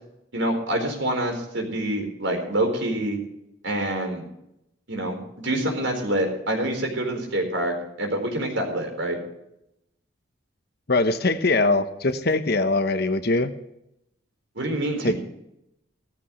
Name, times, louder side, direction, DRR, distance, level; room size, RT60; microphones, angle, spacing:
voice 1, 0.3-3.2 3.6-4.2 4.9-9.2 14.6-15.2, right 1 dB, 70° right, 3 dB, 4.4 m, -26 dB
voice 2, 10.9-13.5 15.0-15.2, left 2 dB, 50° left, 9 dB, 1.0 m, -22 dB
16.5 x 14.5 x 3.2 m, 0.81 s
head